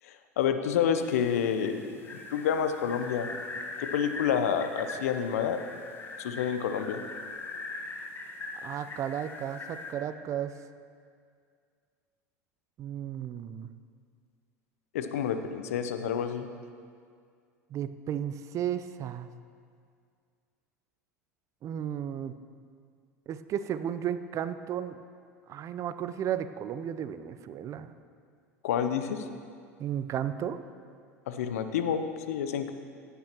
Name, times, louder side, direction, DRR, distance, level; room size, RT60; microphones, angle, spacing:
voice 1, 0.0-3.3 3.8-5.6 6.2-7.0 14.9-16.5 28.6-29.2 31.3-32.7, left 8 dB, 75° left, 8 dB, 0.7 m, -29 dB
sound 1, 1.0-9.9, left 3 dB, 30° left, 1.3 m, -41 dB
voice 2, 8.6-10.5 12.8-13.7 17.7-19.3 21.6-22.3 23.3-25.0 25.5-27.9 29.8-30.6, right 9 dB, 40° right, 12 dB, 0.6 m, -34 dB
16.5 x 9.2 x 3.0 m, 2.2 s
hypercardioid pair, 80°, 8 cm